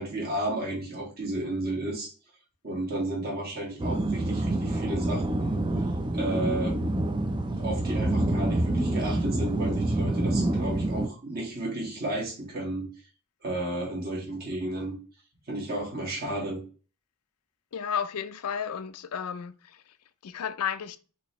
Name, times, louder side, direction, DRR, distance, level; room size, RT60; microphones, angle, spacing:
voice 1, 0.0-2.1 2.6-5.8 6.1-6.7 7.6-12.9 13.4-14.9 15.5-16.6, right 1 dB, 45° right, 2.0 m, -33 dB
sound 1, 3.8-11.1, right 1 dB, 20° right, 0.4 m, -27 dB
voice 2, 17.7-19.5 20.2-21.0, left 7 dB, 80° left, 0.5 m, -32 dB
5.9 x 2.9 x 3.0 m
head